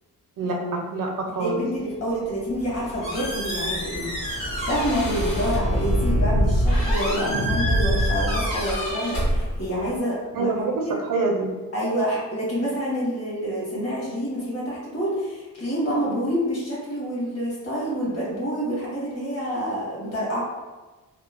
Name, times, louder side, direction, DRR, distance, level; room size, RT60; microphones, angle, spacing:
voice 1, 0.4-1.6 10.3-11.5, right 3 dB, 70° right, 1 dB, 0.5 m, -26 dB
voice 2, 1.4-4.3 4.6-11.0 11.7-20.4, equal, 45° left, -6 dB, 1.1 m, -27 dB
Squeak, 2.5-10.0, equal, 75° left, 1.0 m, -30 dB
sound 1, 2.6-8.9, equal, 20° left, 0.4 m, -25 dB
2.9 x 2.0 x 2.4 m, 1.2 s
wide cardioid pair, 140°, 33 cm